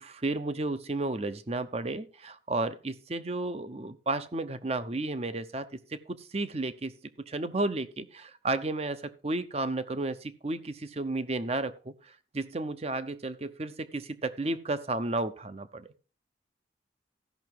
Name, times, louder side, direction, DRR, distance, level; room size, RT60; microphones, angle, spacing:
voice 1, 0.0-15.9, right 2 dB, 35° right, 0.7 m, -33 dB
14.5 x 5.9 x 4.5 m
head